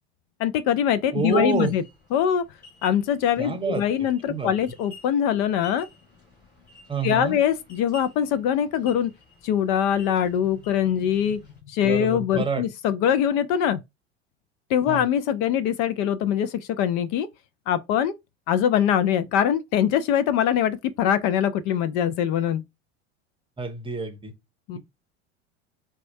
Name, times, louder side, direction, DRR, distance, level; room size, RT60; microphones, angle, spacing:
voice 1, 0.4-1.8 2.1-2.4 2.8-5.9 7.0-9.1 9.4-11.4 11.7-13.8 14.7-17.3 17.7-18.1 18.5-22.6 24.7-24.8, left 9 dB, 55° left, 0.5 m, -23 dB
voice 2, 1.1-1.7 3.4-3.8 4.3-4.5 6.9-7.4 11.8-12.7 14.9-15.1 23.6-24.3, right 5 dB, 15° right, 0.7 m, -28 dB
sound 1, 1.2-11.6, left 2 dB, 30° left, 2.2 m, -51 dB
4.2 x 2.3 x 2.6 m
hypercardioid pair, 90°, 34 cm